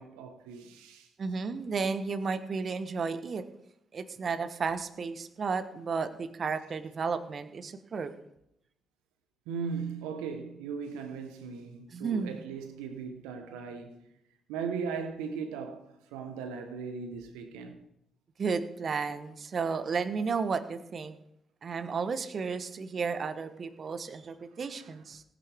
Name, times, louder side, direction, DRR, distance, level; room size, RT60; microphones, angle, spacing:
voice 1, 0.0-1.1 9.5-14.1 14.5-17.8 24.7-24.9, right 6 dB, 80° right, 1.2 m, -38 dB
voice 2, 1.2-3.4 3.9-8.1 11.9-12.4 18.4-21.2 21.6-25.2, right 5 dB, 50° right, 1.2 m, -33 dB
18.5 x 10.5 x 3.6 m
hypercardioid pair, 40°, 0 cm